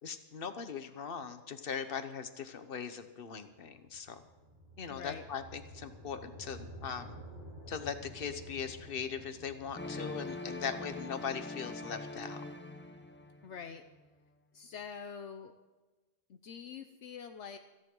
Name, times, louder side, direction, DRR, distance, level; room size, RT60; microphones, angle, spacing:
voice 1, 0.0-4.2 4.8-7.2 7.7-12.4, left 6 dB, 50° left, 9 dB, 1.3 m, -40 dB
sound 1, 3.5-13.7, equal, 40° right, 4.1 m, -52 dB
voice 2, 4.9-5.2 13.4-13.8 14.5-15.5 16.3-17.6, left 6 dB, 70° left, 7 dB, 1.1 m, -45 dB
sound 2, 9.8-13.6, left 2 dB, 10° left, 0.8 m, -43 dB
29.0 x 10.5 x 3.9 m, 1.2 s
omnidirectional pair, 1.3 m